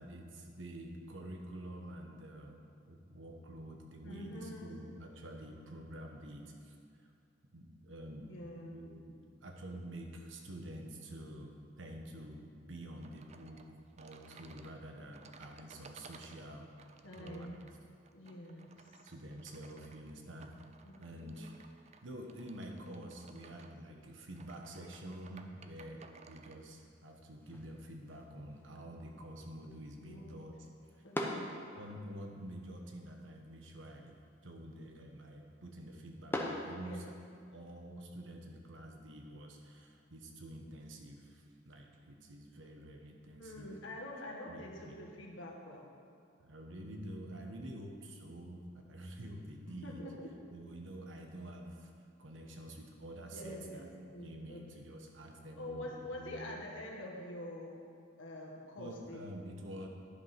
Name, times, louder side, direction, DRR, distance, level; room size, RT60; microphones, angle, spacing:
voice 1, 0.0-7.1 7.5-8.3 8.6-13.6 14.0-16.7 17.2-17.7 19.0-20.6 21.0-21.5 22.0-26.0 26.3-30.5 31.7-37.0 37.5-43.7 44.5-45.0 46.4-50.0 50.5-51.9 52.2-53.9 54.2-56.6 58.8-59.9, right 1 dB, 80° right, 2 dB, 1.1 m, -48 dB
voice 2, 4.0-4.8 8.3-8.8 17.0-17.5 18.1-18.8 20.8-21.5 30.0-30.4 31.0-31.5 36.8-37.1 43.4-45.9 49.8-50.3 53.3-54.8 55.6-57.9 58.2-59.2, left 1 dB, 85° left, -2 dB, 1.6 m, -46 dB
sound 1, 13.0-26.6, right 4 dB, 35° right, 0.4 m, -59 dB
sound 2, 27.4-37.4, left 1 dB, 10° left, 0.8 m, -46 dB
10.5 x 5.5 x 5.8 m, 2.4 s
head